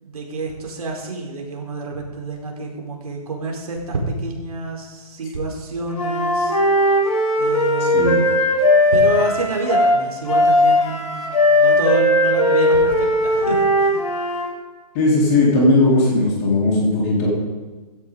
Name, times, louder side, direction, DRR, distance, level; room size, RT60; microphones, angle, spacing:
voice 1, 0.0-6.6 7.4-8.1 8.9-14.0, right 3 dB, 65° right, -1 dB, 4.4 m, -28 dB
Wind instrument woodwind instrument, 5.9-14.5, left 1 dB, 55° left, 5.6 m, -17 dB
voice 2, 14.9-17.3, left 2 dB, 20° left, -4 dB, 3.9 m, -17 dB
16.5 x 14.5 x 4.0 m, 1.3 s
hypercardioid pair, 165°, 21 cm